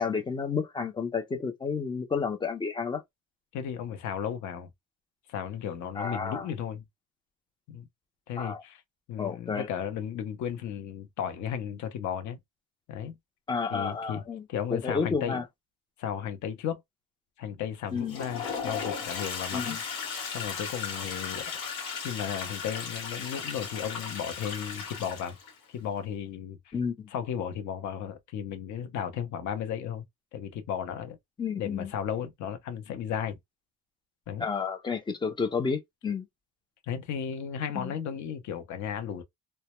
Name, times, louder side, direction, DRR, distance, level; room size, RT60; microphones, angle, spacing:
voice 1, 0.0-3.0 6.0-6.5 8.4-8.6 9.2-9.7 13.5-14.5 14.7-15.4 17.9-18.2 19.5-19.8 26.7-27.1 31.4-31.9 34.4-36.3 37.7-37.9, left 5 dB, 15° left, 0.4 m, -31 dB
voice 2, 3.5-4.7 5.3-6.8 7.7-7.9 8.3-8.8 9.1-12.4 12.9-13.2 13.7-14.2 14.5-15.4 16.0-16.8 17.4-19.8 20.3-21.6 22.0-25.4 25.7-26.7 27.1-30.0 30.3-31.2 31.6-33.4 34.3-34.5 36.8-39.2, left 8 dB, 50° left, 0.6 m, -34 dB
Toilet flush, 17.9-25.6, left 6 dB, 90° left, 1.2 m, -36 dB
2.1 x 2.1 x 2.9 m
cardioid pair, 145°, 37 cm